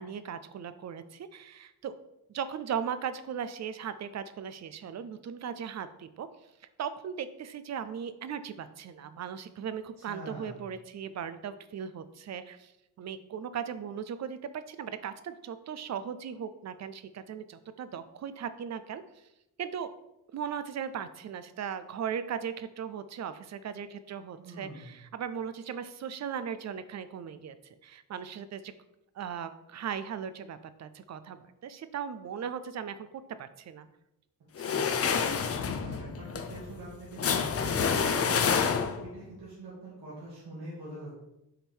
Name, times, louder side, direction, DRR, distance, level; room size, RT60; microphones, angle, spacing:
voice 1, 0.0-1.9 2.3-6.3 6.8-12.7 13.0-19.0 19.6-19.9 20.3-27.6 27.8-28.7 29.2-33.1 33.4-33.9, right 8 dB, 45° right, 12 dB, 0.5 m, -38 dB
voice 2, 10.1-10.6 24.4-24.9 34.6-35.0 35.8-38.4 39.0-41.1, right 1 dB, 80° right, -7 dB, 2.1 m, -44 dB
sound 1, 34.6-39.2, left 6 dB, 40° left, 0.6 m, -28 dB
7.3 x 3.6 x 4.5 m, 0.88 s
wide cardioid pair, 165°, 38 cm